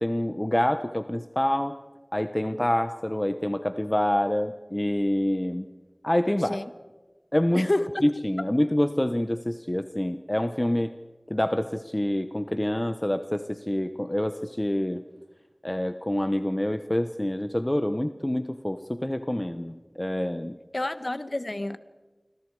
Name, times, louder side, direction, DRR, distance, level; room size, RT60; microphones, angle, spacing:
voice 1, 0.0-1.8 2.1-5.7 6.0-6.6 7.3-7.7 8.0-10.9 11.3-15.0 15.6-20.5, left 1 dB, 25° left, 9 dB, 1.0 m, -26 dB
voice 2, 7.5-7.9 20.7-21.8, left 1 dB, 55° left, 11 dB, 1.4 m, -29 dB
28.5 x 26.0 x 4.9 m, 1.2 s
wide cardioid pair, 40°, 0 cm